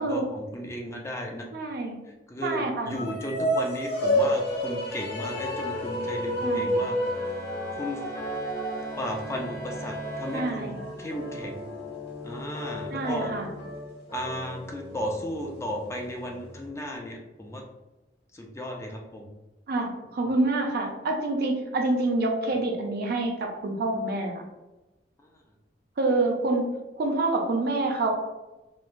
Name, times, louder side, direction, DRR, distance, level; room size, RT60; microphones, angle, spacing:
voice 1, 0.0-1.5 2.0-7.4 7.8-8.0 9.0-11.7 12.2-13.3 14.1-17.6 18.3-19.3 25.2-25.3, left 1 dB, 15° left, 1 dB, 0.3 m, -35 dB
voice 2, 1.5-2.0 2.4-3.0 6.4-6.7 10.3-10.8 12.9-13.5 19.7-24.3 26.0-26.7 27.0-28.1, right 2 dB, 60° right, 3 dB, 0.4 m, -27 dB
sound 1, 2.9-11.4, equal, 65° left, 0.7 m, -30 dB
sound 2, 3.9-16.7, left 1 dB, 30° left, 0.9 m, -40 dB
Bowed string instrument, 6.7-11.2, right 2 dB, 75° right, 0.9 m, -44 dB
3.0 x 2.0 x 2.5 m, 1.1 s
head